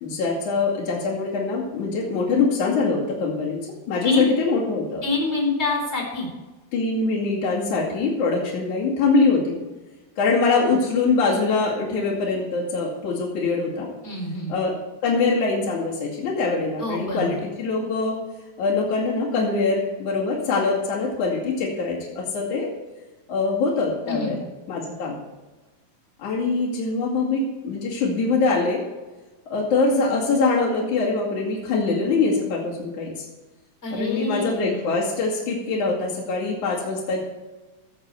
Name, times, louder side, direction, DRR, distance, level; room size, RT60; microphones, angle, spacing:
voice 1, 0.0-3.6 3.9-5.0 6.7-9.6 10.2-13.9 14.5-14.7 15.0-18.2 18.6-22.7 23.3-24.4 24.7-25.2 26.2-28.8 29.5-33.3 33.9-37.2, left 4 dB, 60° left, -6 dB, 3.7 m, -23 dB
voice 2, 5.0-6.3 14.0-14.5 16.8-17.4 24.0-24.4 33.8-34.8, left 2 dB, 20° left, 0 dB, 4.1 m, -26 dB
15.0 x 8.7 x 4.7 m, 1.2 s
omnidirectional pair, 4.1 m